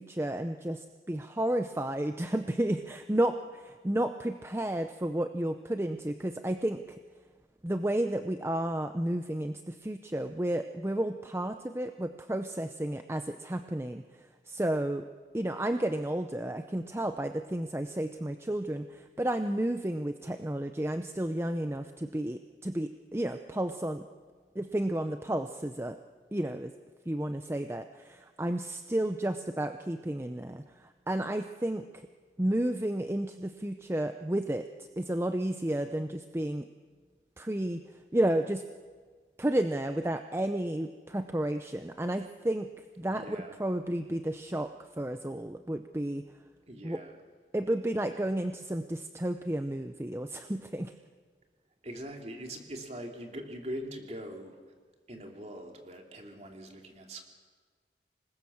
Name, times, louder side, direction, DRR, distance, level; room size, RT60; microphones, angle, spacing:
voice 1, 0.0-7.0 7.6-14.0 14.5-15.1 15.3-24.1 24.6-26.0 26.3-26.7 27.1-32.1 32.4-36.7 37.4-37.8 38.1-38.7 39.4-46.2 46.8-47.0 47.5-50.9, right 1 dB, 15° right, 8 dB, 0.6 m, -32 dB
voice 2, 43.1-43.6 46.7-47.1 51.8-54.6 55.1-57.2, equal, 35° right, 2 dB, 3.0 m, -42 dB
26.5 x 20.0 x 7.2 m, 1.5 s
head